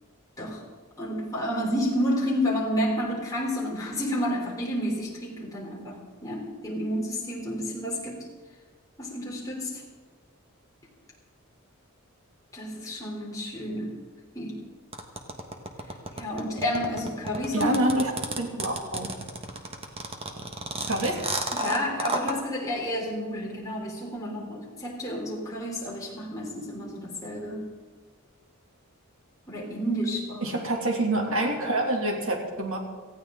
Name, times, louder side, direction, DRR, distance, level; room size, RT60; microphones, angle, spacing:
voice 1, 1.0-8.3 9.0-9.8 12.5-14.0 14.3-14.6 16.2-17.7 21.5-27.7 29.5-30.5, equal, 15° left, -3 dB, 3.5 m, -30 dB
sound 1, 14.9-22.3, right 2 dB, 25° right, 1.3 m, -32 dB
voice 2, 17.5-18.1 18.4-19.1 20.9-21.2 30.4-32.8, right 1 dB, 75° right, 1 dB, 2.7 m, -26 dB
18.5 x 15.0 x 3.8 m, 1.5 s
head